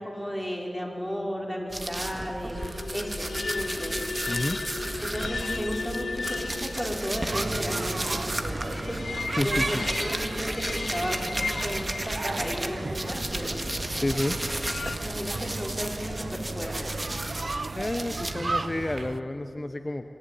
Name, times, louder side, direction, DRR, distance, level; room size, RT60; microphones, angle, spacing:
voice 1, 0.0-2.6 2.9-4.1 5.0-13.6 15.0-17.1, equal, 5° right, -2 dB, 5.1 m, -34 dB
sound 1, 1.7-12.7 12.9-18.3, right 1 dB, 35° right, 1.8 m, -34 dB
sound 2, 2.6-15.0, left 4 dB, 75° left, 0.5 m, -37 dB
voice 2, 4.3-4.6 9.4-9.8 14.0-14.4 17.7-20.1, left 2 dB, 35° left, 8 dB, 0.8 m, -30 dB
sound 3, 7.3-19.2, right 3 dB, 60° right, 0.6 m, -35 dB
25.5 x 11.5 x 9.5 m, 2.5 s
cardioid pair, 45°, 0 cm